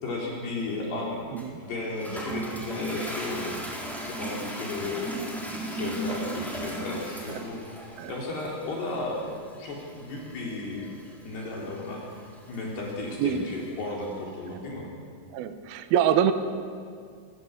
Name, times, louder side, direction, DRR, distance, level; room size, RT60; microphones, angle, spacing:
voice 1, 0.0-1.2 1.6-7.8 8.1-10.9 11.2-14.9, left 2 dB, 55° left, -3 dB, 5.6 m, -34 dB
Toilet flush, 1.4-14.1, right 1 dB, ahead, 3.9 m, -38 dB
voice 2, 15.3-16.3, right 9 dB, 65° right, 8 dB, 2.6 m, -25 dB
27.0 x 21.0 x 8.2 m, 2.1 s
omnidirectional pair, 5.6 m